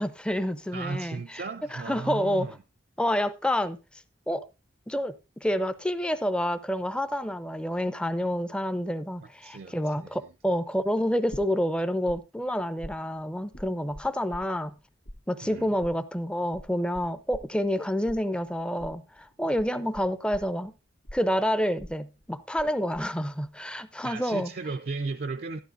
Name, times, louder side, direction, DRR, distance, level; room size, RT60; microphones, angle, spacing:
voice 1, 0.0-1.4 1.7-2.5 3.0-3.8 4.3-4.5 4.9-14.7 15.3-20.7 21.1-24.5, equal, 5° left, 0.5 m, -28 dB
voice 2, 0.7-2.5 9.4-10.1 15.4-15.7 24.0-25.6, right 3 dB, 55° right, 0.4 m, -35 dB
sound 1, 11.3-12.2 12.4-14.8 15.1-22.7 22.9-23.5, equal, 60° left, 1.7 m, -44 dB
12.0 x 11.5 x 2.6 m
head